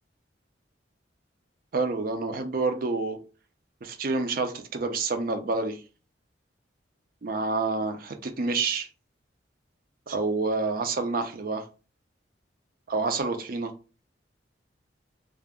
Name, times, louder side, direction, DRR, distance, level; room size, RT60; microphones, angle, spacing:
voice 1, 1.7-3.2 3.8-5.8 7.2-8.9 10.1-11.7 12.9-13.7, right 3 dB, 50° right, 0.5 m, -28 dB
2.3 x 2.0 x 3.5 m
head